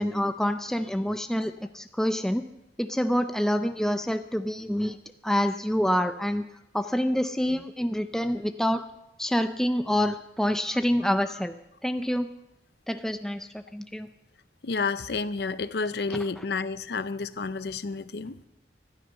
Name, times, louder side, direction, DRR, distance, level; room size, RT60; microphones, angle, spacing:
voice 1, 0.0-2.5 2.8-5.0 5.2-6.4 6.7-8.9 9.2-11.6 11.8-12.3 12.9-14.1 16.1-16.4, equal, 5° left, 8 dB, 0.4 m, -27 dB
voice 2, 14.6-18.5, left 4 dB, 70° left, 14 dB, 0.6 m, -30 dB
15.0 x 12.5 x 5.6 m, 0.90 s
head